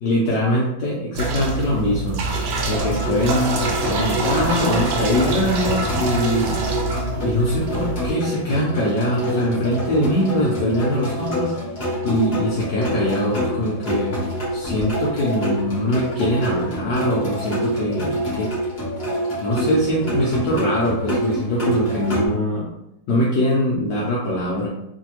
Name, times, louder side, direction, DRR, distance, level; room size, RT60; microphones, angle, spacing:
voice 1, 0.0-2.3 2.7-6.6 7.2-11.5 12.0-14.2 14.5-18.5 19.4-22.7 23.1-24.7, left 1 dB, 70° left, -5 dB, 1.1 m, -22 dB
sound 1, 1.1-8.1, right 2 dB, 90° right, 1.4 m, -25 dB
sound 2, 2.8-22.3, right 1 dB, 40° left, 1.1 m, -26 dB
3.2 x 2.6 x 2.9 m, 0.82 s
omnidirectional pair, 2.2 m